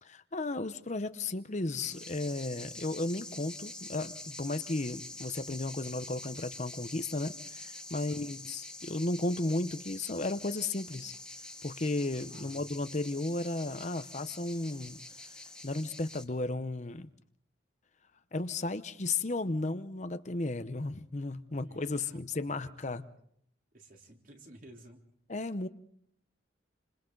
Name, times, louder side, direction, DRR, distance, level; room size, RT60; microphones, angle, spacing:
voice 1, 0.0-11.1 11.6-15.0 15.6-17.1 18.3-23.0 25.3-25.7, left 2 dB, 40° left, 11 dB, 0.8 m, -34 dB
sound 1, 1.8-16.2, left 2 dB, 5° left, 1.3 m, -46 dB
voice 2, 7.9-8.3 12.3-12.8 21.6-23.1 23.7-25.0, right 1 dB, 45° right, 2 dB, 3.4 m, -55 dB
28.5 x 26.5 x 3.9 m, 0.67 s
head